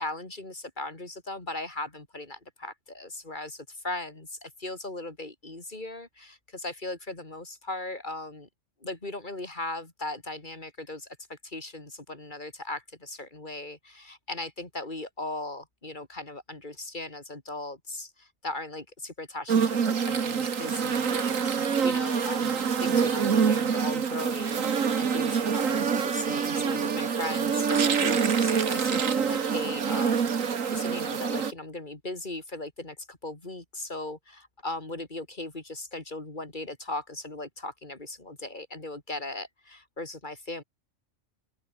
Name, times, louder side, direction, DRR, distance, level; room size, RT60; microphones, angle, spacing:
voice 1, 0.0-8.5 8.8-40.6, left 2 dB, 40° left, 3.4 m, -38 dB
sound 1, 19.5-31.5, right 6 dB, 90° right, 1.9 m, -26 dB
open air
omnidirectional pair, 1.3 m